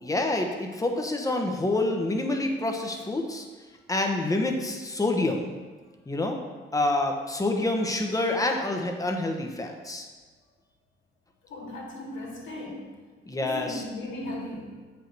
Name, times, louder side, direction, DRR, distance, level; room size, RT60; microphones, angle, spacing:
voice 1, 0.0-3.5 3.9-5.5 6.1-6.4 6.7-10.1 13.2-13.8, left 2 dB, 15° left, 3 dB, 1.1 m, -27 dB
voice 2, 11.5-12.9 13.4-14.8, left 1 dB, 75° left, -2 dB, 2.1 m, -37 dB
7.8 x 5.3 x 4.6 m, 1.4 s
cardioid pair, 90°, 20 cm